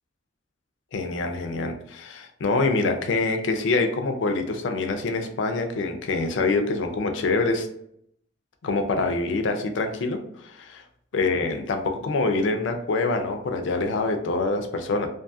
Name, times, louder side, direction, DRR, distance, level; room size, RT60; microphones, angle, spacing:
voice 1, 0.9-7.7 8.6-10.8 11.1-15.1, left 3 dB, 65° left, 5 dB, 0.4 m, -25 dB
2.5 x 2.3 x 2.6 m, 0.72 s
head